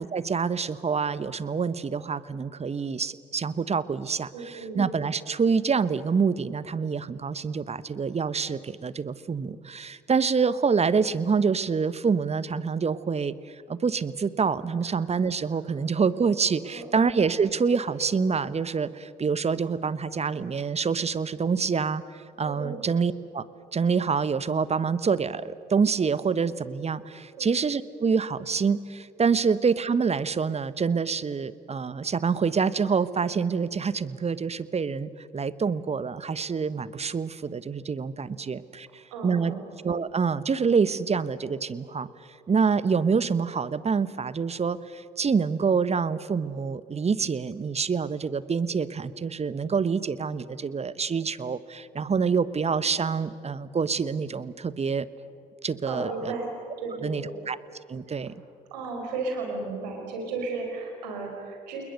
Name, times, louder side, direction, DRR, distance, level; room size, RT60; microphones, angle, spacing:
voice 1, 0.0-13.3 13.7-22.0 22.4-23.4 23.7-38.9 39.2-39.5 39.8-42.1 42.5-55.1 55.6-56.1 57.0-57.6 57.9-58.3, right 5 dB, 30° right, 17 dB, 1.1 m, -26 dB
voice 2, 4.3-4.8 14.8-14.9 16.6-17.2 22.4-22.8 27.3-27.5 39.1-39.6 55.9-56.5 56.8-57.4 58.1-58.2 58.7-61.8, right 3 dB, 75° right, 2 dB, 5.0 m, -34 dB
29.5 x 21.5 x 6.7 m, 2.5 s
figure-of-eight pair, 45°, 21 cm